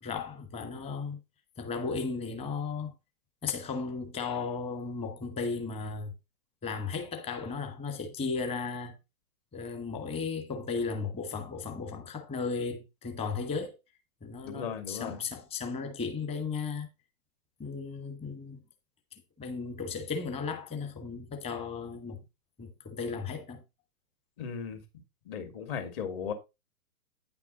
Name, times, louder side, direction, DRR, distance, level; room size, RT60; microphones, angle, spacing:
voice 1, 0.0-1.2 1.6-2.9 3.4-6.1 6.6-9.0 9.5-13.8 14.2-16.9 17.6-18.6 19.1-22.2 22.6-23.6, left 5 dB, 15° left, 1.2 m, -35 dB
voice 2, 14.4-15.2 24.4-24.8 25.2-26.3, left 7 dB, 40° left, 2.7 m, -36 dB
9.5 x 5.9 x 4.1 m
figure-of-eight pair, 120°, 43 cm